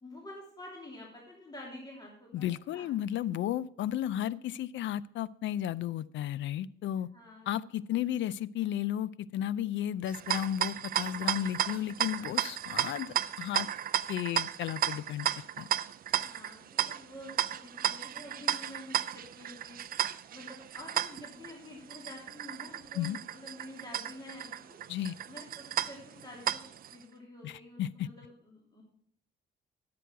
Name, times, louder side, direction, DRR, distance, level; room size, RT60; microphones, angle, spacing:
voice 1, 0.0-2.9 7.1-7.5 16.1-19.8 20.3-24.8 25.3-28.8, left 1 dB, 20° left, -3 dB, 3.0 m, -48 dB
voice 2, 2.3-7.1 7.5-13.7 14.1-15.3 15.6-15.7 22.9-23.2 24.9-25.2 27.4-28.1, left 11 dB, 70° left, 19 dB, 0.5 m, -33 dB
sound 1, 10.1-26.9, right 10 dB, 50° right, 0.4 m, -34 dB
11.0 x 7.8 x 4.6 m, 0.66 s
cardioid pair, 90°, 20 cm